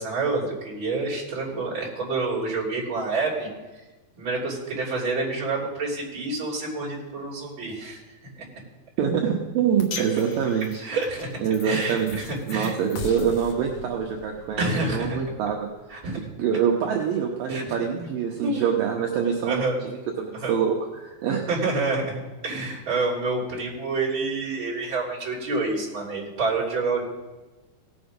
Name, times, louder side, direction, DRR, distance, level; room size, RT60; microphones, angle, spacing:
voice 1, 0.0-3.5 4.2-8.0 8.4-8.5 10.8-11.3 11.6-12.7 14.6-15.2 15.9-16.2 17.5-17.7 18.4-18.7 19.4-19.8 20.4-20.5 21.5-27.0, right 3 dB, 35° right, -4 dB, 3.7 m, -28 dB
voice 2, 9.0-10.8 11.4-12.2 12.5-15.7 16.4-21.4, right 7 dB, 70° right, 0 dB, 2.6 m, -25 dB
sound 1, 9.8-16.2, left 5 dB, 60° left, 2.1 m, -41 dB
17.0 x 7.1 x 5.2 m, 1.1 s
omnidirectional pair, 4.4 m